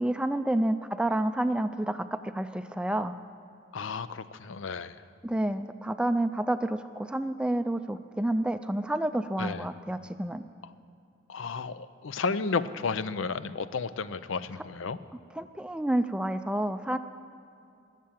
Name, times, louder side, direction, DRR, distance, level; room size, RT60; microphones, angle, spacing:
voice 1, 0.0-3.2 5.2-10.4 14.6-14.7 15.3-17.0, right 1 dB, 5° right, 10 dB, 0.3 m, -29 dB
voice 2, 3.7-4.9 9.4-9.7 11.3-15.0, left 4 dB, 85° left, 14 dB, 0.5 m, -32 dB
21.0 x 7.4 x 7.4 m, 2.5 s
head